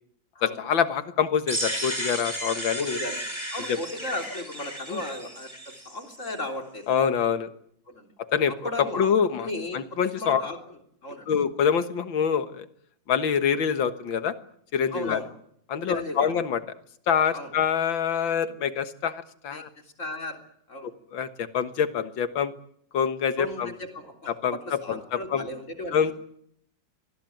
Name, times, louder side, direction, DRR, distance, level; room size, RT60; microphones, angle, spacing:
voice 1, 0.4-3.0 3.7-3.8 4.9-5.0 6.9-7.5 8.3-8.5 8.8-9.5 9.7-10.4 11.3-12.7 13.1-14.3 14.7-15.2 15.7-16.6 17.1-19.7 21.1-22.5 22.9-23.7 24.3-25.0 25.3-25.4 25.9-26.1, left 7 dB, 80° left, 11 dB, 2.2 m, -25 dB
sound 1, 1.5-6.3, right 1 dB, 15° right, 4.6 m, -34 dB
voice 2, 2.8-3.2 3.5-6.9 7.9-8.1 8.6-9.8 10.1-11.3 14.9-15.3 15.9-16.3 17.3-17.5 19.5-20.4 20.7-20.9 23.4-26.1, left 1 dB, 40° left, 4 dB, 3.8 m, -36 dB
25.5 x 19.5 x 9.2 m, 0.70 s
omnidirectional pair, 2.1 m